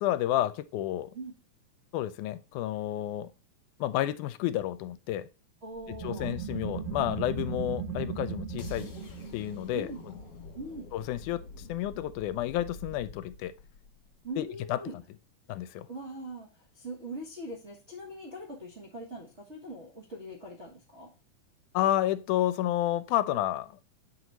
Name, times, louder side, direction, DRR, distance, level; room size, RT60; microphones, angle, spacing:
voice 1, 0.0-1.1 1.9-3.3 3.8-5.3 5.9-9.0 9.3-10.1 10.9-11.4 11.7-13.5 14.4-14.8 15.5-15.9 21.7-23.8, left 13 dB, 85° left, 2.0 m, -30 dB
voice 2, 5.6-6.3 9.7-10.0 10.5-10.9 14.2-15.0 15.9-16.5 16.7-21.1, right 1 dB, 45° right, 0.8 m, -41 dB
sound 1, 5.8-11.1, right 7 dB, 65° right, 1.8 m, -38 dB
sound 2, 8.6-14.6, left 3 dB, 55° left, 2.3 m, -47 dB
8.1 x 3.0 x 5.2 m
omnidirectional pair, 3.6 m